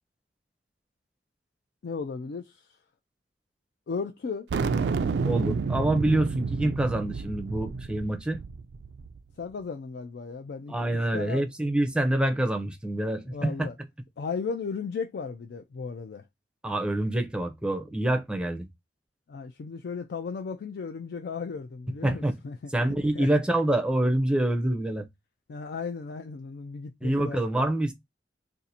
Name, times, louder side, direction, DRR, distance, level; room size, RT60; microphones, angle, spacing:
voice 1, 1.8-2.6 3.9-4.5 9.4-11.4 13.3-13.7 14.2-16.2 19.3-22.7 23.1-23.3 25.5-27.5, left 5 dB, 65° left, 0.4 m, -35 dB
sound 1, 4.5-9.2, right 4 dB, 65° right, 0.3 m, -30 dB
voice 2, 5.2-8.4 10.7-13.7 16.6-18.7 22.0-22.3 22.7-25.1 27.0-27.9, right 1 dB, 5° right, 0.5 m, -26 dB
2.6 x 2.5 x 4.0 m
head